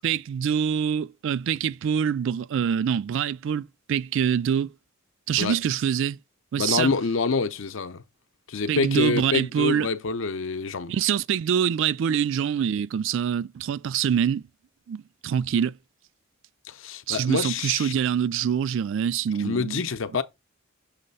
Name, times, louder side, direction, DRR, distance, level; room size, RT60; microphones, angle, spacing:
voice 1, 0.0-4.7 5.3-6.2 6.5-6.9 8.7-9.9 10.9-14.5 14.9-15.7 17.1-19.9, right 8 dB, 65° right, 0.3 m, -25 dB
voice 2, 6.6-8.0 8.5-10.9 16.7-17.9 19.4-20.2, left 4 dB, 65° left, 0.6 m, -26 dB
6.5 x 3.2 x 5.4 m
head